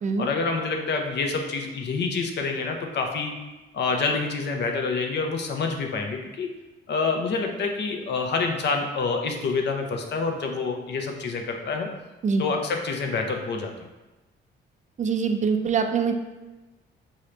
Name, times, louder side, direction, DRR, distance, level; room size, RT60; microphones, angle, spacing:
voice 1, 0.2-3.3 3.7-6.5 6.9-11.9 12.4-13.7, left 4 dB, 60° left, 3 dB, 0.7 m, -27 dB
voice 2, 15.0-16.1, right 5 dB, 40° right, 6 dB, 0.4 m, -24 dB
4.9 x 2.8 x 3.2 m, 1.1 s
cardioid pair, 90°, 20 cm